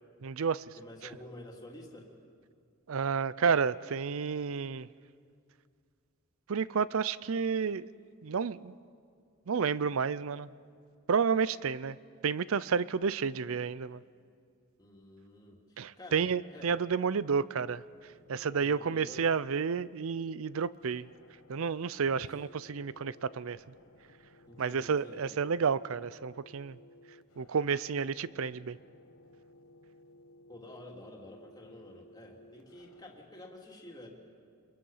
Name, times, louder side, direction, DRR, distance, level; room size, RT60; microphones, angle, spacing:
voice 1, 0.2-0.6 2.9-4.9 6.5-7.9 8.2-8.7 9.5-10.5 11.1-12.0 12.2-14.0 15.8-17.8 18.3-21.1 21.5-23.6 24.6-26.8 27.4-28.8, right 6 dB, 65° right, 18 dB, 0.5 m, -30 dB
voice 2, 0.8-2.1 14.8-16.7 18.5-19.3 22.1-22.3 24.5-25.6 30.5-34.1, left 1 dB, 20° left, -2 dB, 2.9 m, -50 dB
sound 1, 17.7-33.2, left 1 dB, 85° left, 1.2 m, -58 dB
27.5 x 22.0 x 5.6 m, 2.2 s
head